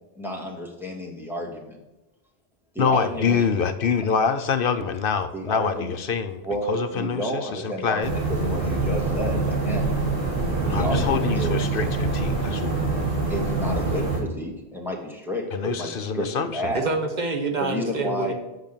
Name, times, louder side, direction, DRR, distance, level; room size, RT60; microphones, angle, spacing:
voice 1, 0.2-1.8 2.7-3.5 4.2-4.3 5.3-6.0 6.4-10.0 10.7-11.6 13.3-16.9 17.6-18.3, equal, ahead, -2 dB, 2.0 m, -31 dB
voice 2, 2.8-8.1 10.6-12.7 15.5-16.7, left 6 dB, 65° left, 10 dB, 0.8 m, -26 dB
sound 1, 8.0-14.2, right 3 dB, 60° right, 3.0 m, -25 dB
voice 3, 16.7-18.3, right 3 dB, 45° right, 4 dB, 1.4 m, -26 dB
8.2 x 6.0 x 6.8 m, 1.0 s
omnidirectional pair, 1.0 m